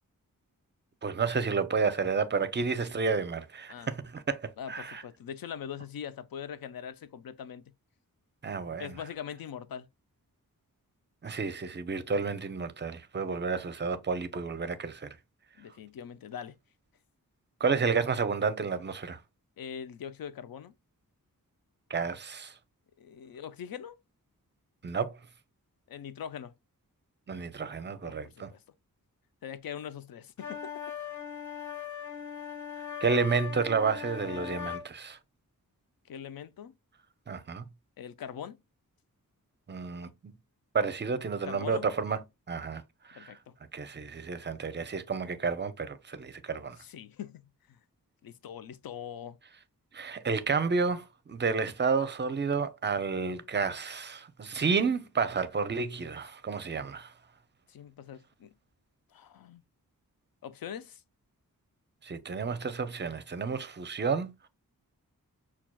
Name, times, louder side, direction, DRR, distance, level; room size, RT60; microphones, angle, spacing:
voice 1, 1.0-5.0 8.4-9.0 11.2-15.2 17.6-19.2 21.9-22.5 24.8-25.1 27.3-28.5 33.0-35.2 37.3-37.6 39.7-40.3 40.7-42.8 43.1-43.4 43.7-46.8 49.9-57.1 62.0-64.5, right 5 dB, 30° right, 0.5 m, -31 dB
voice 2, 4.6-7.6 8.8-9.9 15.6-16.5 19.6-20.7 23.0-24.0 25.9-26.5 28.0-28.6 29.4-30.7 36.1-36.7 38.0-38.6 41.4-41.9 43.1-43.5 46.8-47.8 48.2-49.4 57.7-58.5 59.1-59.6 60.4-61.0, left 8 dB, 80° left, 0.5 m, -42 dB
sound 1, 30.4-34.9, left 8 dB, 55° left, 0.9 m, -39 dB
5.9 x 2.3 x 2.2 m
wide cardioid pair, 75°, 35 cm